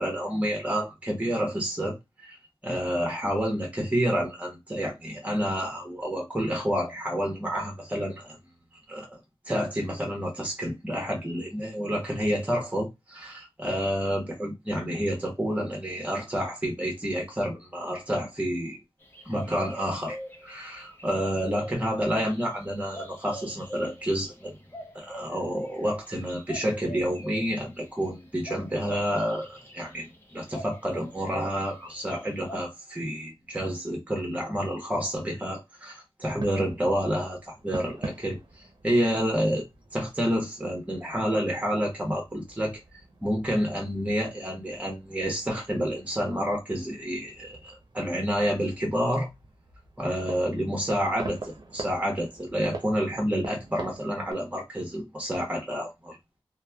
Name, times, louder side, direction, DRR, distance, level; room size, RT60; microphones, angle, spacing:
voice 1, 0.0-2.0 2.3-2.4 2.6-8.4 8.9-9.2 9.5-18.8 19.2-20.2 20.4-24.6 24.9-39.6 39.9-42.8 43.2-49.3 50.0-55.9, equal, 15° right, 1.0 m, -29 dB
sound 1, 19.0-32.6, equal, 25° left, 0.7 m, -43 dB
sound 2, 36.2-54.3, right 3 dB, 50° right, 0.7 m, -44 dB
3.1 x 2.2 x 2.2 m
wide cardioid pair, 65°, 9 cm